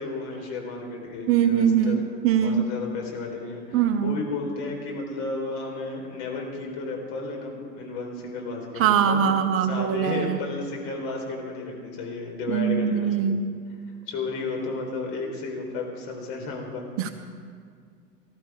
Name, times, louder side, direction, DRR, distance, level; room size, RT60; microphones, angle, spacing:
voice 1, 0.0-2.0 2.4-9.2 9.7-13.4 14.1-17.1, left 3 dB, 50° left, 1 dB, 4.2 m, -33 dB
voice 2, 1.3-2.7 3.7-4.2 8.8-10.4 12.5-13.5 17.0-17.1, right 8 dB, 30° right, 7 dB, 0.8 m, -22 dB
19.0 x 13.0 x 4.9 m, 2.1 s
figure-of-eight pair, 90°, 48 cm